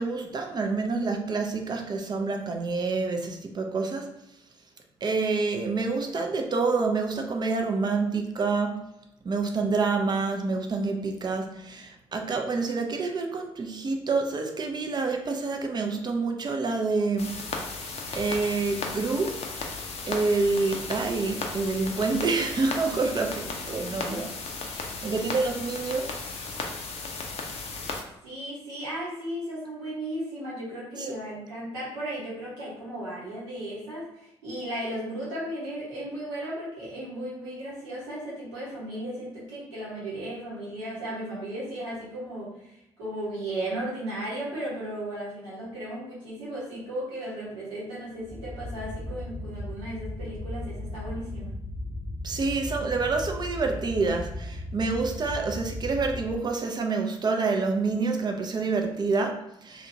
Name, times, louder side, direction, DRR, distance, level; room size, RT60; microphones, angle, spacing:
voice 1, 0.0-4.1 5.0-8.8 9.2-17.4 18.1-19.3 20.1-24.3 25.0-26.2 31.0-31.1 52.2-59.9, right 4 dB, 30° right, 3 dB, 0.5 m, -27 dB
sound 1, 17.2-28.0, left 4 dB, 45° left, 0.5 m, -35 dB
voice 2, 22.8-23.4 24.0-24.3 28.2-51.6, right 1 dB, 75° right, -8 dB, 1.1 m, -35 dB
sound 2, 48.2-56.3, left 1 dB, 10° left, 0.9 m, -36 dB
2.8 x 2.5 x 2.6 m, 0.83 s
figure-of-eight pair, 45°, 15 cm